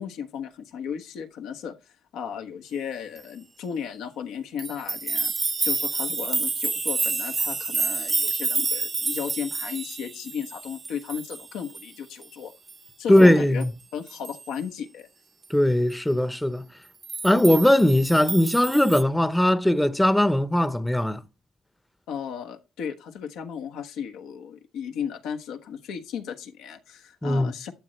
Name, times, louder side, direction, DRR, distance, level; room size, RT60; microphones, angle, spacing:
voice 1, 0.0-1.7 2.1-12.5 13.0-13.6 13.9-15.1 22.1-27.7, left 7 dB, 90° left, 1.2 m, -35 dB
sound 1, 4.6-11.9 12.2-12.3 12.7-12.8 13.2-13.3 13.6-13.7 14.1-14.6 17.0-19.0, right 4 dB, 30° right, 0.7 m, -29 dB
voice 2, 13.1-13.7 15.5-16.7 17.2-21.2 27.2-27.5, left 1 dB, 5° left, 0.8 m, -19 dB
12.0 x 7.8 x 3.2 m
cardioid pair, 90°, 0 cm